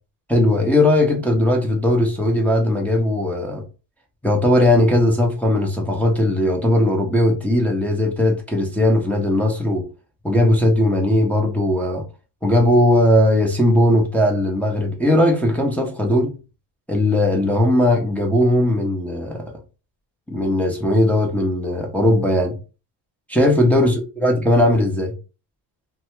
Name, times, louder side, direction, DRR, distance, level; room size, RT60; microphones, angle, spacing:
voice 1, 0.3-3.6 4.2-9.9 10.2-12.0 12.4-16.3 16.9-19.5 20.3-22.6 23.3-25.1, left 1 dB, 5° left, 0.6 m, -18 dB
2.7 x 2.2 x 3.1 m
cardioid pair, 105°, 48 cm